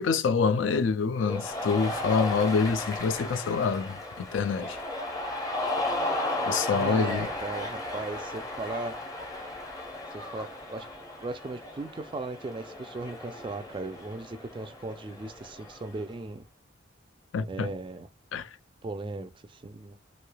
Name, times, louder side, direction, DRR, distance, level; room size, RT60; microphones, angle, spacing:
voice 1, 0.0-4.8 6.5-7.3 17.3-17.7 18.3-18.5, left 5 dB, 75° left, 0.4 m, -26 dB
Cheering, 1.2-16.0, left 1 dB, 20° left, 0.7 m, -35 dB
voice 2, 6.7-9.0 10.1-10.9 11.2-16.4 17.5-18.1 18.8-20.0, right 3 dB, 25° right, 0.3 m, -37 dB
3.2 x 2.7 x 2.2 m
head